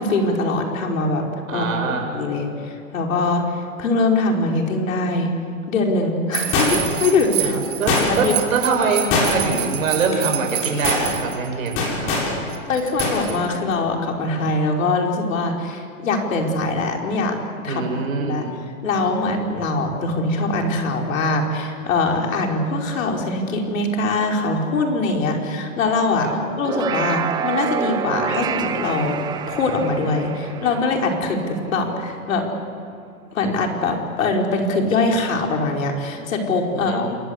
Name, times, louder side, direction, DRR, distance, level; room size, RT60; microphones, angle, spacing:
voice 1, 0.0-5.3 5.7-7.6 7.9-8.3 12.4-17.4 17.6-17.8 18.2-18.5 18.8-26.3 26.6-29.2 29.5-32.4 33.3-37.1, left 3 dB, 65° left, 1 dB, 5.1 m, -22 dB
voice 2, 1.5-2.1 7.4-12.2 17.7-18.5 26.2-26.3 36.7-37.1, right 4 dB, 70° right, 3 dB, 6.6 m, -24 dB
sound 1, 6.3-11.7 12.5-13.7, right 15 dB, 40° right, 2.7 m, -28 dB
sound 2, 6.5-7.0 7.9-8.4 9.1-9.6 9.9-10.1 10.6-11.1 11.8-12.3 13.0-13.2 13.5-13.6, left 3 dB, 30° left, 7.7 m, -21 dB
sound 3, 26.5-32.0, right 7 dB, 10° right, 0.7 m, -28 dB
28.5 x 22.0 x 8.2 m, 2.3 s
hypercardioid pair, 140°, 43 cm